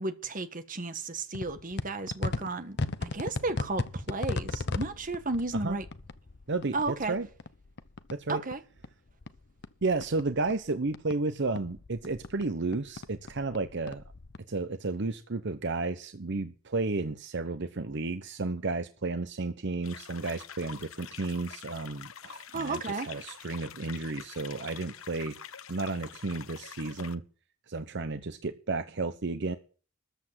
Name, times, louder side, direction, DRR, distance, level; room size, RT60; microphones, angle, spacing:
voice 1, 0.0-5.8 6.7-7.2 8.3-8.6 22.5-23.1, right 3 dB, 40° right, 1.4 m, -33 dB
sound 1, 1.3-8.6 8.8-11.2 11.5-14.4, left 3 dB, 55° left, 0.8 m, -37 dB
voice 2, 6.5-7.3 8.1-8.4 9.8-14.0 14.5-25.4 25.7-27.2 27.7-29.6, right 3 dB, 60° right, 0.9 m, -32 dB
sound 2, 19.8-27.2, left 8 dB, 85° left, 1.0 m, -46 dB
14.0 x 8.4 x 7.5 m
head